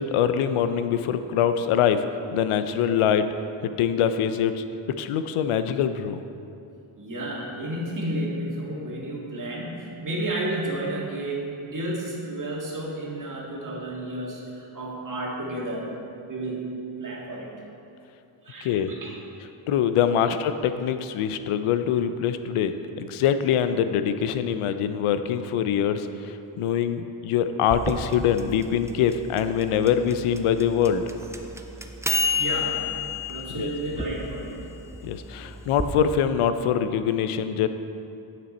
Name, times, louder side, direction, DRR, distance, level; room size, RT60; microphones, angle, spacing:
voice 1, 0.0-2.0 2.3-3.2 3.8-4.5 5.0-6.2 18.7-18.9 19.7-22.7 23.2-26.0 26.6-31.0 33.6-33.7 35.1-35.2 35.7-37.7, left 8 dB, 90° left, 10 dB, 0.6 m, -23 dB
voice 2, 7.0-15.9 16.3-16.6 17.0-17.5 18.4-19.1 32.4-32.8 33.3-34.6, right 1 dB, 40° right, -3 dB, 1.8 m, -31 dB
sound 1, 27.7-35.9, left 3 dB, 5° right, 0.4 m, -30 dB
9.8 x 6.2 x 4.2 m, 2.7 s
cardioid pair, 105°, 49 cm